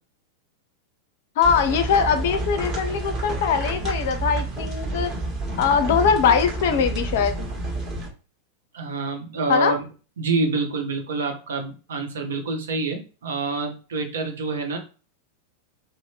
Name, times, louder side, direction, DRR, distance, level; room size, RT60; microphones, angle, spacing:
voice 1, 1.4-5.1 5.6-7.5 9.5-9.7, left 6 dB, 55° left, 9 dB, 0.5 m, -21 dB
sound 1, 1.4-8.1, right 2 dB, 25° right, 1.2 m, -29 dB
voice 2, 8.7-9.8 10.2-14.8, right 3 dB, 65° right, 4 dB, 0.7 m, -27 dB
2.6 x 2.0 x 3.3 m, 0.35 s
figure-of-eight pair, 90°, 0 cm